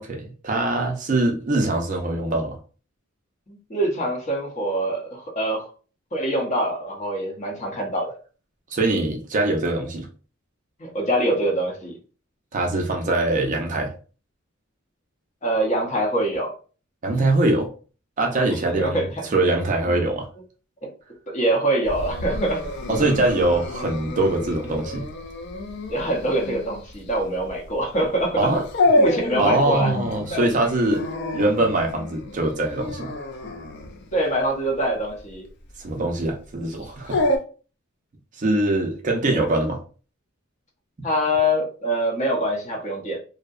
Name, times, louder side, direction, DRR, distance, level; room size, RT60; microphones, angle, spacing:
voice 1, 0.0-2.6 8.7-10.1 12.5-13.9 17.0-17.7 18.2-20.3 22.9-25.1 28.4-28.6 29.4-31.1 31.3-33.1 35.8-37.2 38.4-39.8, right 2 dB, 35° right, 2 dB, 0.4 m, -23 dB
voice 2, 3.5-5.7 6.1-8.2 10.8-11.9 15.4-16.5 18.5-19.4 20.8-20.9 21.3-23.0 25.9-28.5 29.0-29.9 30.3-30.5 34.1-35.5 39.3-39.5 41.0-43.2, right 1 dB, 35° left, -1 dB, 0.7 m, -24 dB
Dog, 21.8-37.4, left 1 dB, 55° left, 0.4 m, -28 dB
2.6 x 2.1 x 2.3 m, 0.37 s
head